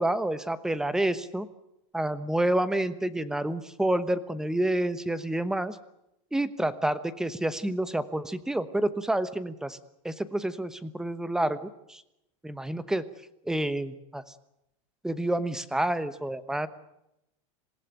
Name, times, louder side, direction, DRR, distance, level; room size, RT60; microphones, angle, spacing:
voice 1, 0.0-1.5 1.9-5.8 6.3-9.8 10.0-12.0 12.4-13.0 13.4-14.2 15.0-16.7, right 1 dB, 5° right, 14 dB, 1.1 m, -28 dB
27.0 x 16.5 x 9.1 m, 0.84 s
supercardioid pair, 155°, 18 cm